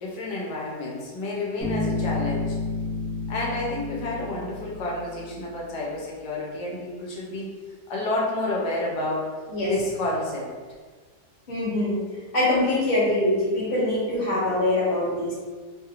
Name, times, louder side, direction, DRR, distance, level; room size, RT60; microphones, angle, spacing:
voice 1, 0.0-2.6 3.3-7.5 7.9-9.3 9.6-10.5, left 2 dB, 85° left, -4 dB, 1.2 m, -30 dB
Bass guitar, 1.6-5.4, left 3 dB, 35° right, 0.9 m, -30 dB
voice 2, 11.5-12.0 12.3-15.3, left 1 dB, 40° left, -7 dB, 1.0 m, -23 dB
3.0 x 2.4 x 2.8 m, 1.5 s
omnidirectional pair, 1.8 m